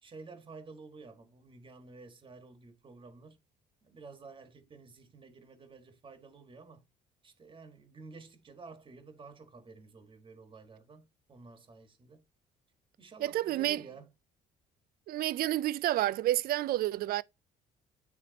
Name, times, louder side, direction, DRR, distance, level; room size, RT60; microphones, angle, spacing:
voice 1, 0.0-3.4 3.8-6.9 7.2-12.2 13.0-14.1, right 4 dB, 30° right, 1.6 m, -51 dB
voice 2, 13.2-13.8 15.1-17.2, right 14 dB, 60° right, 0.4 m, -29 dB
9.3 x 3.4 x 4.0 m
cardioid pair, 110°, 17 cm